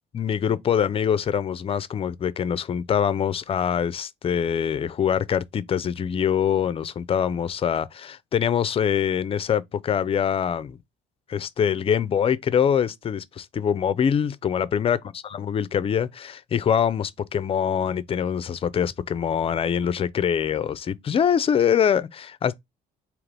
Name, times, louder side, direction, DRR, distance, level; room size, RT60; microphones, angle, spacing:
voice 1, 0.1-10.8 11.3-15.0 15.3-22.6, left 8 dB, 35° left, 0.4 m, -24 dB
3.8 x 2.9 x 3.2 m
cardioid pair, 110°, 17 cm